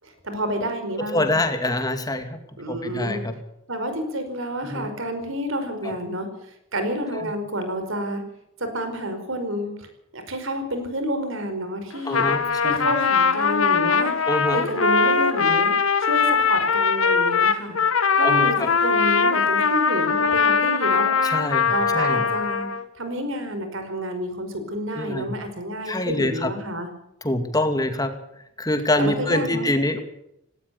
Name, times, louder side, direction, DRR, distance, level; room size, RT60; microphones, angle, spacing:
voice 1, 0.0-1.4 2.6-3.2 3.7-8.2 8.6-9.9 10.1-12.2 12.6-14.1 14.5-15.7 16.0-17.8 18.1-21.1 21.7-22.7 23.0-26.9 29.0-29.7, equal, 65° right, 8 dB, 5.0 m, -29 dB
voice 2, 1.1-2.4 2.7-3.3 4.6-4.9 12.1-12.8 14.3-14.6 18.2-18.4 21.2-22.2 25.0-25.3 25.9-26.5 27.2-28.1 28.6-30.0, left 1 dB, 15° left, 7 dB, 2.4 m, -25 dB
Trumpet, 11.9-22.8, left 5 dB, 75° left, 1.8 m, -21 dB
18.5 x 17.5 x 8.3 m, 0.80 s
head